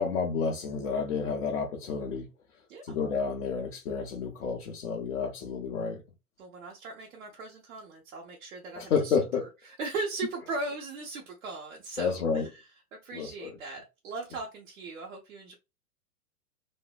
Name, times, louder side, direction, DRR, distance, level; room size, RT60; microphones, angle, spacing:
voice 1, 0.0-2.3 2.8-6.0 8.8-9.5 12.0-12.5 13.1-13.6, left 5 dB, 55° left, 1.1 m, -30 dB
voice 2, 6.4-9.1 9.4-9.5 9.8-12.5 12.9-15.6, right 3 dB, 60° right, 1.2 m, -38 dB
3.1 x 2.8 x 2.3 m
figure-of-eight pair, 105°, 45 cm